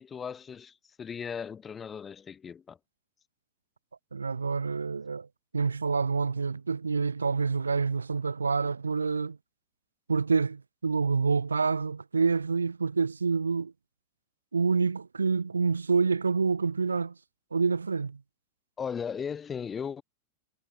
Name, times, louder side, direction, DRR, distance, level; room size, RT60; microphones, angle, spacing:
voice 1, 0.0-2.8 18.8-20.0, left 7 dB, 20° left, 3.3 m, -37 dB
voice 2, 4.1-5.3 5.5-9.4 10.1-13.7 14.5-17.1 17.5-18.2, right 4 dB, 75° right, 3.6 m, -27 dB
figure-of-eight pair, 90°, 0 cm